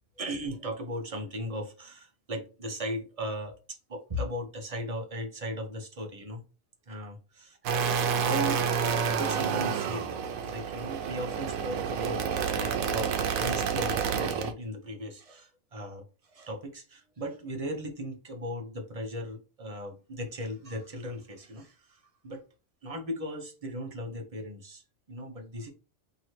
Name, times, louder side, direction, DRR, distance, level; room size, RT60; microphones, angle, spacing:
voice 1, 0.2-6.4 6.9-7.6 8.0-8.6 9.1-12.2 12.5-22.4 22.8-25.7, equal, 35° right, 0.6 m, -37 dB
sound 1, 7.7-14.5, right 6 dB, 90° right, 1.1 m, -29 dB
3.1 x 2.8 x 4.2 m
omnidirectional pair, 1.4 m